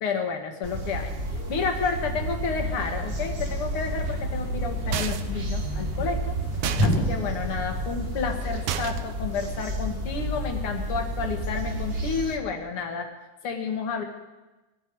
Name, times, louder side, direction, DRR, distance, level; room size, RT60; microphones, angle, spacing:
voice 1, 0.0-6.4 6.8-13.1 13.4-14.0, left 5 dB, 50° left, 3 dB, 2.4 m, -30 dB
sound 1, 0.6-12.4, right 1 dB, 50° right, 0.7 m, -31 dB
Thump thud, 1.9-8.1, equal, 75° left, 8.0 m, -32 dB
sound 2, 4.9-5.4 6.6-7.0 8.7-9.2, right 10 dB, 75° right, 1.4 m, -30 dB
19.5 x 14.5 x 4.7 m, 1.1 s
omnidirectional pair, 3.4 m